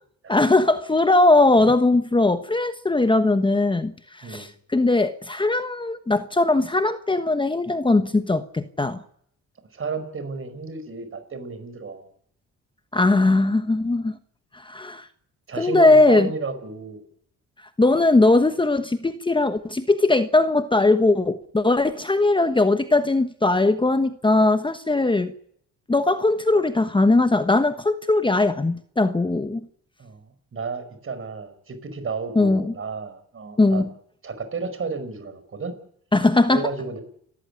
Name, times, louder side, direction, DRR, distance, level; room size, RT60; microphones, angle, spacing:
voice 1, 0.3-9.0 12.9-14.2 14.5-15.1 15.6-16.3 17.8-25.3 25.9-29.6 32.3-32.7 33.6-33.9 36.1-36.6, left 2 dB, 15° left, 1.3 m, -20 dB
voice 2, 9.7-12.1 15.5-17.0 30.0-33.8 34.2-35.7 36.5-37.0, right 4 dB, 45° right, 5.3 m, -32 dB
29.0 x 14.0 x 9.9 m
cardioid pair, 90°, 30 cm